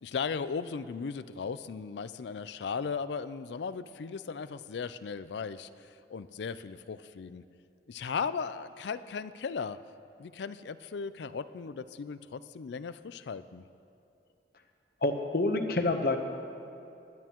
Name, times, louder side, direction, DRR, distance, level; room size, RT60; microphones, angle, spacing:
voice 1, 0.0-7.4 7.9-9.8 10.2-13.6, left 5 dB, 70° left, 14 dB, 0.4 m, -37 dB
voice 2, 15.0-16.2, left 2 dB, 55° left, 6 dB, 0.9 m, -27 dB
20.5 x 11.0 x 3.0 m, 2.6 s
head